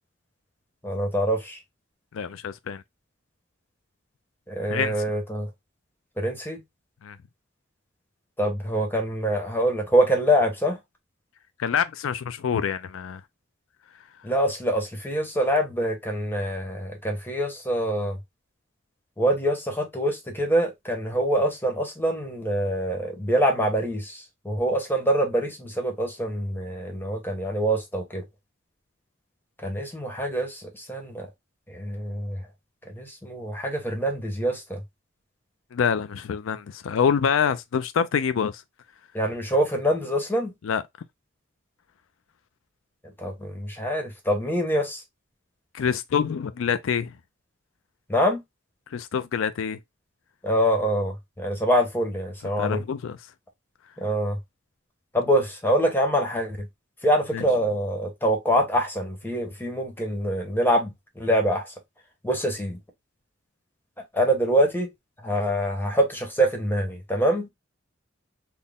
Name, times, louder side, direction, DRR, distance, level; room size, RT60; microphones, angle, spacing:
voice 1, 0.8-1.6 4.5-5.5 6.2-6.6 8.4-10.8 14.2-18.2 19.2-28.2 29.6-31.3 31.7-32.4 32.9-34.8 39.1-40.5 43.2-45.0 48.1-48.4 50.4-52.8 54.0-54.4 55.1-56.7 57.0-61.7 62.2-62.8 64.1-64.9 65.2-67.5, equal, 10° left, 1.1 m, -25 dB
voice 2, 2.1-2.8 4.7-5.0 7.0-7.2 11.6-13.2 35.7-38.6 40.6-40.8 45.7-47.1 48.9-49.8 52.6-53.2 57.3-57.4, left 7 dB, 80° left, 0.4 m, -26 dB
4.1 x 2.1 x 3.5 m
head